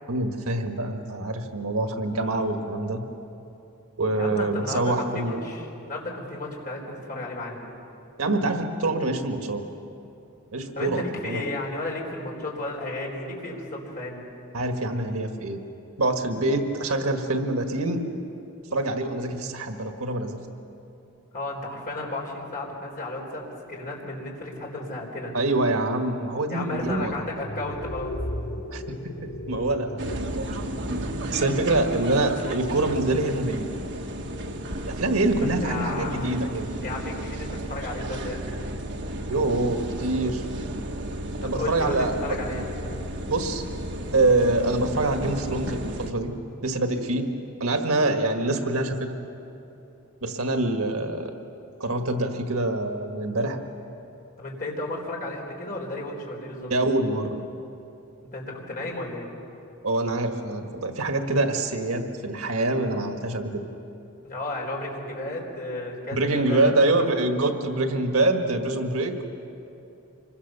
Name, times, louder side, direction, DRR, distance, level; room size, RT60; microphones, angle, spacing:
voice 1, 0.1-3.0 4.0-5.4 8.2-9.6 10.5-11.4 14.5-15.6 16.0-18.0 18.7-20.4 25.3-27.1 28.7-30.6 31.3-33.7 34.8-36.7 39.3-40.4 41.4-42.4 43.3-43.6 44.1-46.3 46.6-47.3 47.6-49.1 50.2-51.3 51.8-53.6 56.7-57.4 59.8-63.6 66.1-69.3, right 2 dB, 85° right, 5 dB, 1.7 m, -25 dB
voice 2, 4.1-7.6 10.7-14.3 21.3-25.3 26.5-28.1 35.6-36.3 36.8-38.5 41.4-42.7 54.4-56.7 58.2-59.3 64.2-66.7, left 2 dB, 40° left, -1 dB, 4.4 m, -33 dB
sound 1, 26.7-31.6, left 1 dB, 75° left, 3.2 m, -36 dB
sound 2, 30.0-46.1, right 1 dB, 55° right, 1.4 m, -33 dB
26.0 x 22.5 x 6.8 m, 2.9 s
head